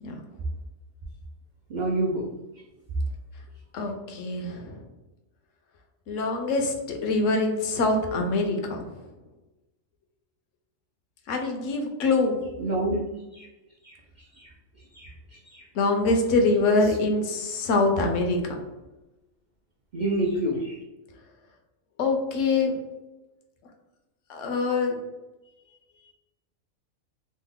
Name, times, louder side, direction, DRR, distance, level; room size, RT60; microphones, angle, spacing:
voice 1, 1.7-2.3 12.6-13.1 13.3-13.5 13.8-14.0 14.4-14.5 14.9-15.1 15.5-15.6 19.9-20.8, right 1 dB, 85° right, -5 dB, 0.4 m, -27 dB
voice 2, 3.7-4.8 6.1-8.8 11.3-12.4 15.7-18.4 22.0-22.7 24.3-25.0, left 3 dB, 70° left, 3 dB, 0.9 m, -24 dB
3.1 x 2.0 x 3.5 m, 1.1 s
omnidirectional pair, 1.4 m